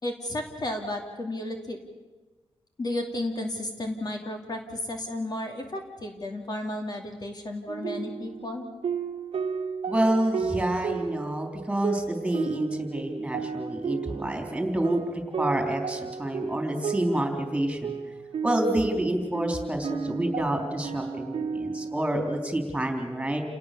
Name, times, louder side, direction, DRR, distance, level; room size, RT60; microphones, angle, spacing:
voice 1, 0.0-1.8 2.8-8.7, left 1 dB, 40° left, 3 dB, 2.5 m, -33 dB
sad rpg-town background, 7.7-22.3, right 6 dB, 70° right, 1.4 m, -33 dB
voice 2, 9.9-15.0 15.4-17.9 18.4-23.4, right 1 dB, 10° right, 3 dB, 3.8 m, -28 dB
29.0 x 18.0 x 6.9 m, 1.2 s
wide cardioid pair, 115°, 10 cm